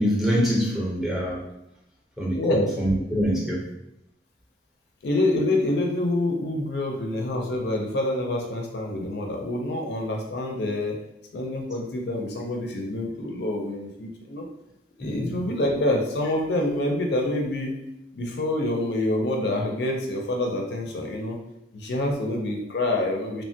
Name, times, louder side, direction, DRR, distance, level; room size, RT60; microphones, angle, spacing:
voice 1, 0.0-1.4 2.2-3.6 15.0-15.3, equal, ahead, -4 dB, 0.6 m, -25 dB
voice 2, 2.3-2.7 5.0-11.0 11.3-14.4 15.0-17.7 18.1-21.4 21.7-23.4, left 1 dB, 65° left, 1 dB, 0.4 m, -26 dB
3.0 x 2.1 x 2.6 m, 0.85 s
head